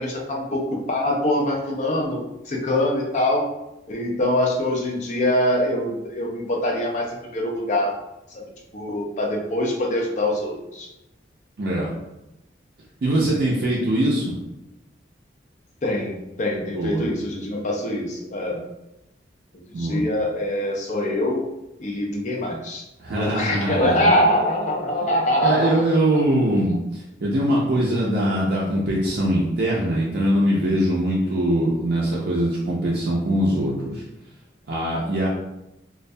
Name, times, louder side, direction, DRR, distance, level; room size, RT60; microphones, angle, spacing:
voice 1, 0.0-2.2 2.5-3.5 3.9-7.9 8.3-8.4 8.7-10.9 15.8-18.6 19.8-21.4 21.8-22.8 23.2-25.8, left 1 dB, 40° left, -1 dB, 0.4 m, -24 dB
voice 2, 11.6-12.0 13.0-14.4 16.7-17.1 19.7-20.0 23.0-24.3 25.4-34.0 34.7-35.3, right 1 dB, 55° right, -5 dB, 0.4 m, -22 dB
2.2 x 2.1 x 2.6 m, 0.92 s
head